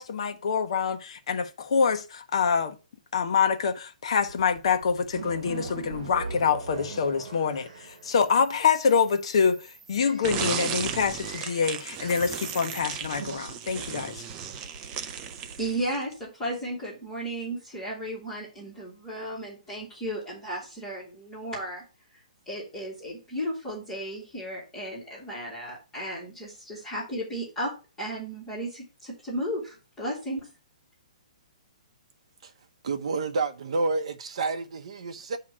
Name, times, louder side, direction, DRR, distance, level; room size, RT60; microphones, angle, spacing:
voice 1, 0.0-2.8 3.1-14.2, left 6 dB, 50° left, 0.8 m, -26 dB
sound 1, 4.1-15.9, right 4 dB, 75° right, 1.0 m, -42 dB
sound 2, 10.2-16.1, right 8 dB, 15° right, 0.4 m, -35 dB
voice 2, 15.6-21.8 22.5-27.7 28.0-30.5, right 1 dB, 10° left, 2.2 m, -34 dB
voice 3, 32.8-35.4, right 3 dB, 50° right, 0.8 m, -29 dB
8.6 x 2.9 x 6.0 m
hypercardioid pair, 175°, 4 cm